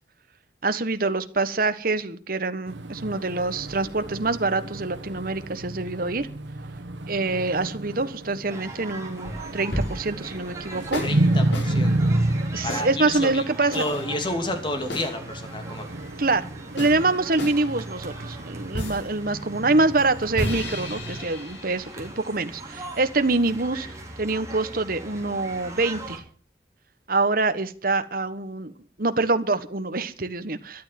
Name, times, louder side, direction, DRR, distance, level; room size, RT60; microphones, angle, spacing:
voice 1, 0.6-6.3 7.1-11.0 12.5-13.8 16.2-16.5 16.7-23.9 24.2-26.2 27.1-28.7 29.0-30.8, right 3 dB, 50° right, 11 dB, 1.3 m, -25 dB
sound 1, 2.7-21.3, right 1 dB, 90° right, 1.6 m, -31 dB
sound 2, 8.5-26.2, right 2 dB, 15° right, 3.6 m, -41 dB
sound 3, 9.2-10.2 10.9-11.2 11.5-11.7 12.7-12.9 13.7-14.1 14.9-15.1 16.8-17.0 17.4-17.6 18.7-19.1 20.4-22.5, left 1 dB, 80° left, 5.4 m, -32 dB
voice 2, 11.0-12.1 12.6-13.4 13.7-15.9, left 1 dB, 25° left, 6 dB, 2.7 m, -30 dB
13.0 x 12.0 x 7.6 m, 0.43 s
head